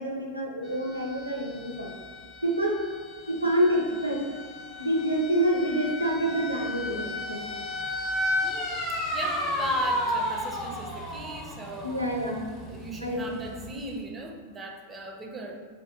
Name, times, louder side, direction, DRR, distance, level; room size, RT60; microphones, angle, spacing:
voice 1, 0.0-1.9 2.4-2.7 3.3-4.2 4.8-7.4 9.4-9.9 11.8-12.4 12.9-13.2, right 1 dB, 85° right, 0 dB, 0.5 m, -27 dB
sound 1, 0.7-14.0, left 1 dB, 30° left, 0.7 m, -33 dB
voice 2, 8.4-11.9 12.6-15.6, right 2 dB, 20° right, 1 dB, 0.5 m, -39 dB
2.6 x 2.6 x 3.5 m, 1.5 s
figure-of-eight pair, 90°, 0 cm